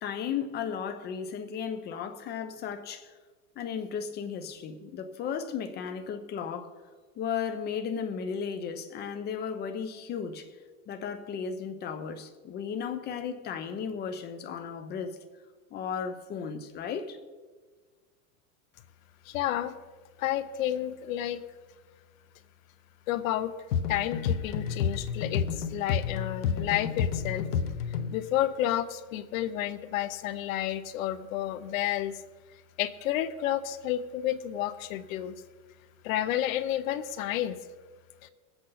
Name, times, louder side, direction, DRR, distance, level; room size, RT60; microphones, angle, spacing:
voice 1, 0.0-3.1 3.6-6.8 7.2-10.5 10.9-15.2 15.7-17.2, left 7 dB, 20° left, 0.8 m, -35 dB
voice 2, 19.3-19.8 20.2-21.4 23.1-23.5 23.9-27.5 28.1-32.1 32.8-35.4 36.0-37.6 38.2-38.3, left 12 dB, 60° left, 0.8 m, -30 dB
sound 1, 23.7-28.2, left 7 dB, 85° left, 1.2 m, -30 dB
20.5 x 8.0 x 4.1 m
supercardioid pair, 150°, 46 cm